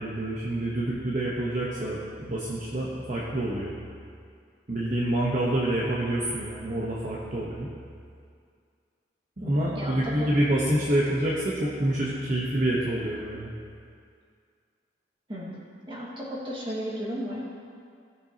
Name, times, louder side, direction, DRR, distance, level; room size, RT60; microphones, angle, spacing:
voice 1, 0.0-3.7 4.7-7.7 9.4-13.5, right 1 dB, 45° right, -6 dB, 1.1 m, -27 dB
voice 2, 9.4-10.3 15.3-17.5, equal, 25° right, -5 dB, 1.9 m, -35 dB
16.0 x 6.9 x 2.9 m, 2.2 s
head